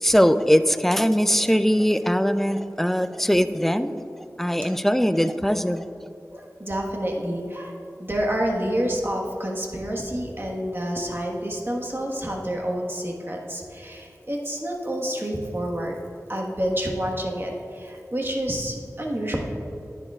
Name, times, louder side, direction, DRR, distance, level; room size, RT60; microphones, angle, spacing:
voice 1, 0.0-4.0 4.4-5.9, equal, 5° left, 11 dB, 0.4 m, -21 dB
voice 2, 5.4-5.8 6.3-7.7 8.0-16.0 16.3-19.4, equal, 40° right, -1 dB, 1.4 m, -28 dB
10.5 x 10.0 x 2.4 m, 2.7 s
wide cardioid pair, 45°, 6 cm